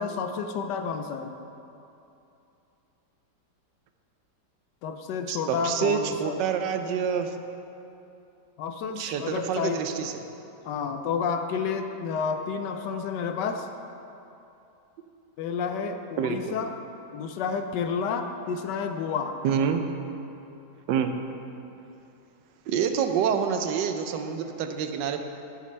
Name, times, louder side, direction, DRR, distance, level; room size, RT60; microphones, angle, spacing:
voice 1, 0.0-1.3 4.8-6.3 8.6-9.8 10.7-13.7 15.4-16.7 17.1-19.4, left 6 dB, 80° left, 6 dB, 1.2 m, -30 dB
voice 2, 5.3-7.3 9.0-10.1 16.2-16.6 19.4-19.8 20.9-21.1 22.7-25.2, right 7 dB, 85° right, 7 dB, 1.3 m, -27 dB
10.5 x 8.5 x 3.3 m, 2.8 s
omnidirectional pair, 1.9 m